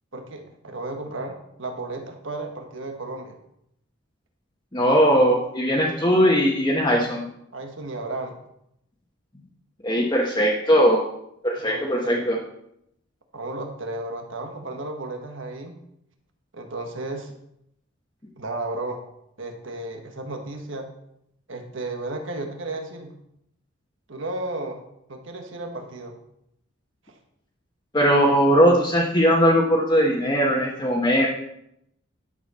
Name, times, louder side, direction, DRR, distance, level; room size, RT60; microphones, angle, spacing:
voice 1, 0.1-3.4 7.5-8.4 11.6-12.3 13.3-15.7 16.5-17.3 18.4-19.0 19.4-20.9 21.5-23.1 24.1-24.8 25.1-26.2, right 2 dB, 65° right, 4 dB, 1.4 m, -33 dB
voice 2, 4.7-7.3 9.8-11.0 11.4-12.4 27.9-31.3, equal, 20° left, -3 dB, 1.3 m, -19 dB
11.0 x 6.9 x 4.3 m, 0.78 s
head